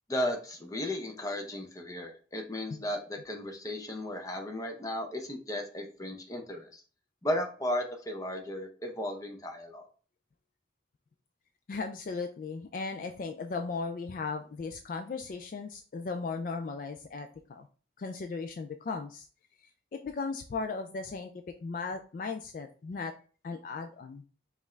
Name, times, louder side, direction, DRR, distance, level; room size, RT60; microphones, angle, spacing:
voice 1, 0.1-6.8 7.2-9.8, left 1 dB, 20° left, 3 dB, 0.7 m, -35 dB
voice 2, 11.7-17.7 18.0-19.3 19.9-21.3 21.6-23.2 23.4-24.2, left 4 dB, 50° left, 5 dB, 0.3 m, -37 dB
5.2 x 2.4 x 3.2 m, 0.39 s
head